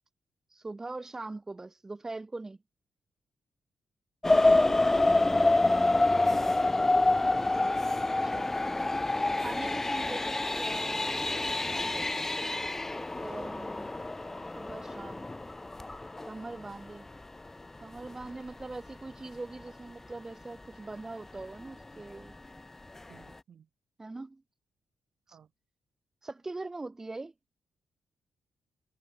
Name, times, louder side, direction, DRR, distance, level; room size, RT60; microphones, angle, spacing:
voice 1, 0.5-2.6 8.2-8.5 9.4-11.1 13.2-13.9 14.6-15.3 16.3-17.1 17.8-22.3 24.0-24.4 25.3-25.4 26.2-27.3, right 2 dB, 20° right, 3.4 m, -41 dB
sound 1, 4.2-16.9 17.5-17.6 18.1-18.2 18.6-18.7, left 2 dB, 15° left, 1.1 m, -27 dB
voice 2, 4.2-7.2 11.5-12.4 16.5-16.7 23.1-23.7 25.3-25.5, right 8 dB, 65° right, 6.7 m, -53 dB
cardioid pair, 85°, 2 cm